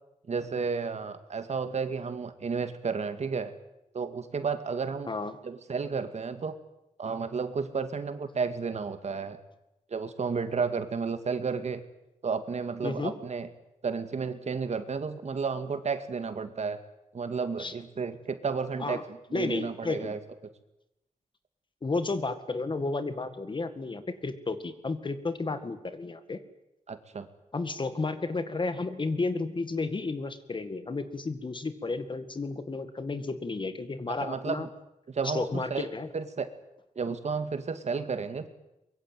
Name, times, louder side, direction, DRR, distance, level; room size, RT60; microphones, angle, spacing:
voice 1, 0.3-3.5 3.9-5.1 5.4-6.6 7.0-9.4 9.9-11.8 12.2-13.5 13.8-16.8 17.1-19.0 19.3-20.2 26.9-27.3 34.2-34.7 35.1-35.9 36.1-36.5 37.0-38.5, right 5 dB, 60° right, 9 dB, 2.2 m, -32 dB
voice 2, 12.8-13.1 17.6-17.7 18.8-19.0 19.3-20.2 21.8-26.4 27.5-34.7 35.2-36.1, left 3 dB, 40° left, 11 dB, 2.0 m, -32 dB
23.5 x 22.5 x 9.3 m, 0.90 s
wide cardioid pair, 135°, 13 cm